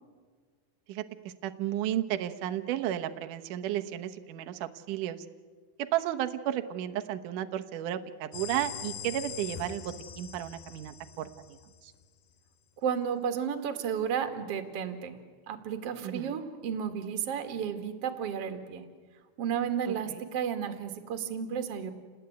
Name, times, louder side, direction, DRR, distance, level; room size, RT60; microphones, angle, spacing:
voice 1, 1.4-5.3 5.8-9.8 10.2-11.6 11.8-11.9 16.0-16.4 19.9-20.2, right 12 dB, 65° right, 7 dB, 2.3 m, -33 dB
sound 1, 8.3-12.0, left 8 dB, 80° left, 4.0 m, -42 dB
voice 2, 12.8-15.2 15.5-18.8 19.4-21.9, right 8 dB, 45° right, 6 dB, 2.6 m, -32 dB
29.5 x 19.5 x 9.5 m, 1.5 s
omnidirectional pair, 4.6 m